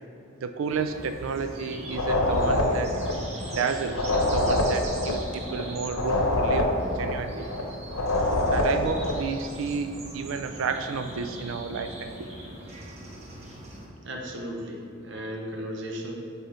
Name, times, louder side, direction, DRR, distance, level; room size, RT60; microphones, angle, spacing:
voice 1, 0.4-2.9 3.5-6.7 7.0-7.5 8.5-12.3, right 5 dB, 80° right, 8 dB, 0.4 m, -31 dB
sound 1, 0.7-13.9, right 1 dB, 30° right, 0.8 m, -40 dB
sound 2, 1.9-9.2, left 1 dB, 85° left, 0.8 m, -25 dB
voice 2, 14.0-16.1, equal, 60° right, 0 dB, 0.8 m, -35 dB
7.8 x 4.0 x 3.1 m, 2.6 s
head